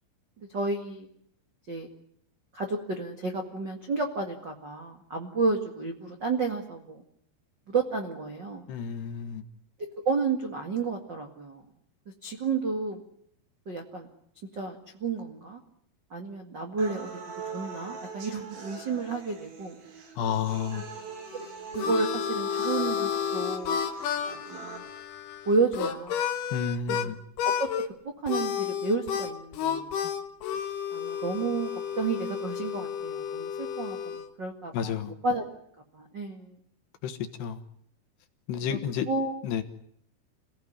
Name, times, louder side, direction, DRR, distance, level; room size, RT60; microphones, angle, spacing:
voice 1, 0.5-1.1 1.7-1.9 2.5-7.0 7.7-8.6 10.0-11.6 12.2-13.0 13.6-14.1 14.5-15.6 16.1-17.2 17.5-19.7 21.3-21.5 21.7-23.8 24.5-24.8 25.4-26.2 27.0-27.2 27.6-27.7 28.0-29.9 30.9-31.7 32.0-35.4 35.9-36.6 39.1-39.3, right 4 dB, 80° right, 1.0 m, -31 dB
voice 2, 8.7-9.4 20.2-20.8 26.5-27.2 34.7-35.1 37.0-37.6 38.5-39.1 39.4-39.6, left 7 dB, 65° left, 3.1 m, -31 dB
sound 1, 16.8-24.8, right 5 dB, 65° right, 6.2 m, -42 dB
Harmonica, 21.3-27.1 27.4-27.9 28.3-34.3, left 8 dB, 85° left, 1.9 m, -31 dB
27.5 x 17.5 x 9.8 m
omnidirectional pair, 5.9 m